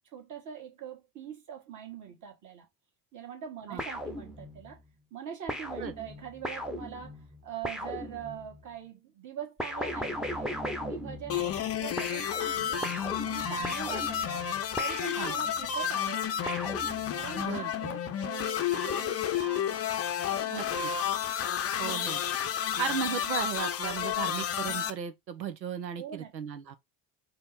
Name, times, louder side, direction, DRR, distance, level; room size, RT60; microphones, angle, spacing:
voice 1, 0.1-2.7 3.1-4.8 5.1-12.9 13.2-14.4 14.8-16.4 17.1-19.8 20.3-21.0 26.0-26.3, right 8 dB, 35° right, 1.6 m, -43 dB
sound 1, 3.8-4.8 5.5-8.6 9.6-11.7 12.0-15.7 16.5-17.5, left 1 dB, ahead, 0.8 m, -38 dB
sound 2, 11.3-24.9, left 9 dB, 30° left, 0.6 m, -31 dB
voice 2, 17.4-17.7 18.0-18.1 20.5-20.9 21.8-22.2 22.8-26.8, right 7 dB, 90° right, 0.6 m, -36 dB
5.0 x 2.1 x 4.0 m
figure-of-eight pair, 60°, 50 cm